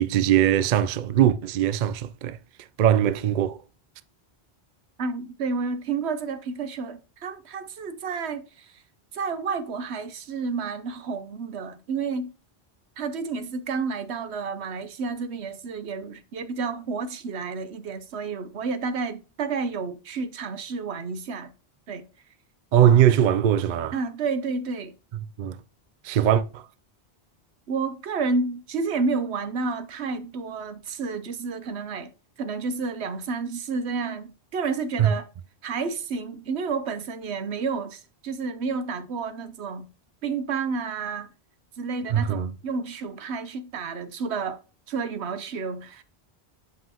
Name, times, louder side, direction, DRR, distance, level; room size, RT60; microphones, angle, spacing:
voice 1, 0.0-2.4 2.8-3.6 22.7-24.0 25.4-25.6 26.0-26.6 35.0-35.1 42.1-42.5, right 10 dB, 55° right, 0.6 m, -20 dB
voice 2, 5.0-8.8 9.1-12.3 13.0-21.5 21.9-22.0 23.9-24.9 27.7-32.1 32.4-35.2 35.6-39.9 40.2-41.3 41.8-44.6 44.9-46.0, right 4 dB, 85° right, 1.1 m, -30 dB
7.5 x 5.5 x 2.9 m
omnidirectional pair, 1.1 m